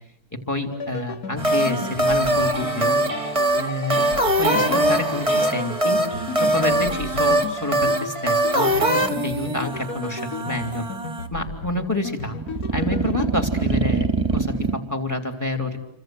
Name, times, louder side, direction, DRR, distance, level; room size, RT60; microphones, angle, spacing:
voice 1, 0.5-3.0 3.5-4.0 4.4-6.0 6.4-10.8 11.3-12.3 12.7-14.1 14.3-15.8, left 2 dB, 10° left, 6 dB, 3.3 m, -28 dB
sound 1, 0.7-13.4, left 4 dB, 65° left, 2.3 m, -35 dB
sound 2, 1.4-11.3 12.4-14.8, right 1 dB, 20° right, 1.8 m, -22 dB
29.5 x 25.0 x 7.9 m, 0.68 s
omnidirectional pair, 1.7 m